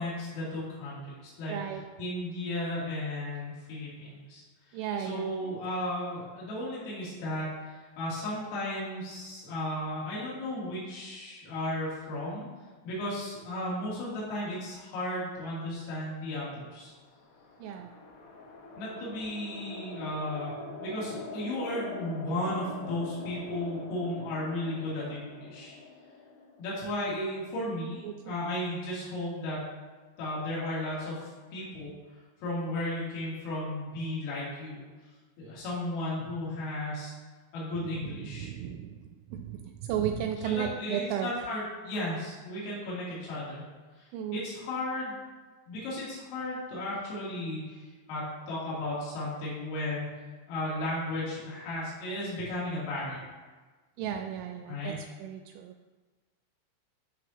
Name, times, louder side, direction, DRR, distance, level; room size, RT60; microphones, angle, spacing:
voice 1, 0.0-1.6 2.0-4.4 4.7-12.5 12.9-16.9 18.8-20.5 20.8-25.8 26.6-29.7 30.2-31.9 32.4-34.8 35.4-37.1 37.5-38.5 40.4-43.6 44.0-44.1 44.3-45.2 45.7-50.1 50.5-53.2 54.7-55.0, left 1 dB, 85° left, -8 dB, 5.7 m, -34 dB
voice 2, 1.5-1.8 4.7-5.5 17.6-17.9 28.0-28.3 37.8-39.0 39.3-41.3 44.1-44.5 54.0-55.7, right 9 dB, 85° right, 5 dB, 2.7 m, -34 dB
sound 1, 16.9-27.4, left 3 dB, 70° left, 2.7 m, -44 dB
13.5 x 6.8 x 2.9 m, 1.4 s
omnidirectional pair, 5.8 m